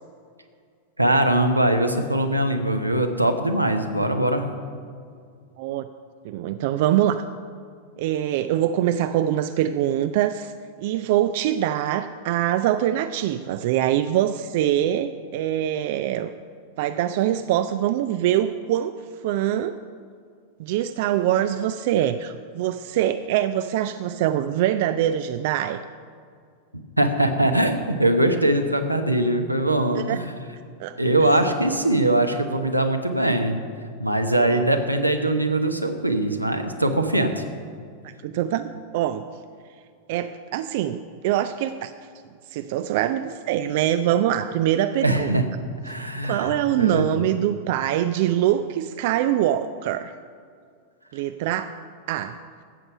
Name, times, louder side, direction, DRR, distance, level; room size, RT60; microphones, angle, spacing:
voice 1, 1.0-4.5 27.0-30.2 31.0-33.6 34.0-37.4 45.0-45.5 45.8-47.1, right 1 dB, 85° right, 5 dB, 0.9 m, -22 dB
voice 2, 6.2-7.2 8.0-10.5 10.8-16.3 16.8-18.9 19.2-19.8 20.6-25.8 30.0-30.2 30.8-31.0 34.3-34.6 38.0-39.3 40.1-41.9 42.5-45.4 46.2-50.1 51.1-51.8 52.1-52.4, right 11 dB, 50° right, 11 dB, 0.4 m, -24 dB
14.0 x 8.0 x 5.6 m, 2.1 s
figure-of-eight pair, 90°, 0 cm